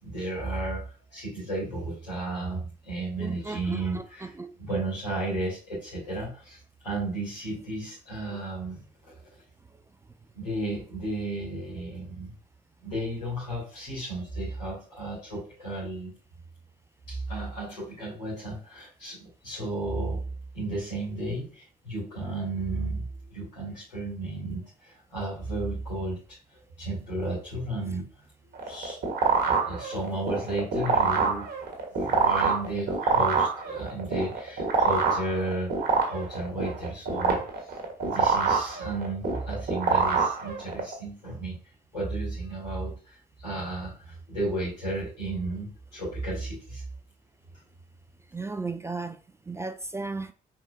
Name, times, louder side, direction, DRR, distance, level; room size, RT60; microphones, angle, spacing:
voice 1, 0.0-4.3 4.6-6.6 6.8-8.8 10.3-12.3 12.8-16.1 17.1-20.2 20.5-26.4 26.8-28.1 28.4-29.0 29.4-31.5 32.0-41.6 41.9-46.8, right 2 dB, 80° left, 2.4 m, -33 dB
voice 2, 3.2-4.5 48.3-49.2 49.5-50.3, right 3 dB, 15° right, 0.4 m, -35 dB
sound 1, 28.5-40.9, right 5 dB, 50° right, 1.3 m, -25 dB
4.8 x 3.7 x 2.5 m
figure-of-eight pair, 40°, 21 cm